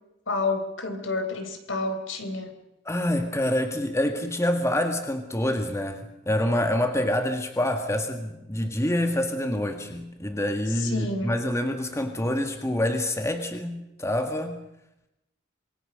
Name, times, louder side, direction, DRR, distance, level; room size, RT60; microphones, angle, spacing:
voice 1, 0.3-2.5 10.7-11.3, left 3 dB, 65° left, 6 dB, 4.2 m, -29 dB
voice 2, 2.9-14.6, left 1 dB, 15° left, 6 dB, 1.7 m, -26 dB
26.5 x 23.0 x 6.5 m, 0.88 s
head